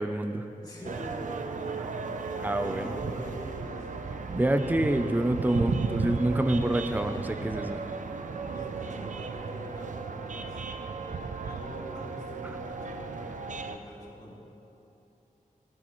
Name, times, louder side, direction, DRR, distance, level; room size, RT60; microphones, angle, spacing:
voice 1, 0.0-0.5 2.4-3.0 4.3-7.8, right 1 dB, 15° right, 8 dB, 0.5 m, -27 dB
voice 2, 0.6-3.9 8.5-10.6 11.4-14.4, equal, 30° left, -6 dB, 2.6 m, -45 dB
sound 1, 0.8-13.8, right 4 dB, 65° right, 0.6 m, -35 dB
15.5 x 9.8 x 3.1 m, 2.9 s
wide cardioid pair, 110°, 14 cm